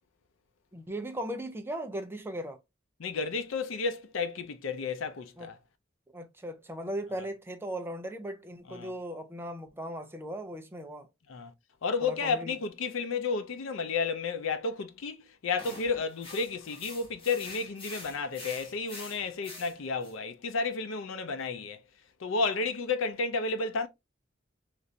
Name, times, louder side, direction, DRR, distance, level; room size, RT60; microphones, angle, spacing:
voice 1, 0.7-2.6 5.4-5.5 6.1-11.1 12.0-12.6, right 1 dB, 10° right, 0.4 m, -38 dB
voice 2, 3.0-5.5 8.7-8.9 11.3-11.5 11.8-21.8 22.2-23.9, left 4 dB, 85° left, 0.5 m, -32 dB
sound 1, 15.6-20.1, left 2 dB, 30° left, 1.2 m, -46 dB
3.2 x 2.5 x 2.6 m
head